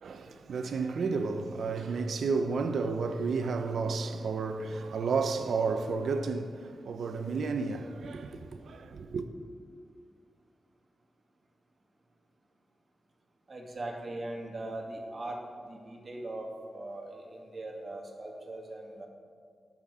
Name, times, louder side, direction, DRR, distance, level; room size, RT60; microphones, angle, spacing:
voice 1, 0.0-9.3, right 4 dB, 85° right, 0.7 m, -32 dB
voice 2, 13.5-19.1, right 1 dB, 45° right, 2.2 m, -40 dB
19.0 x 7.3 x 3.7 m
cardioid pair, 75°, 0 cm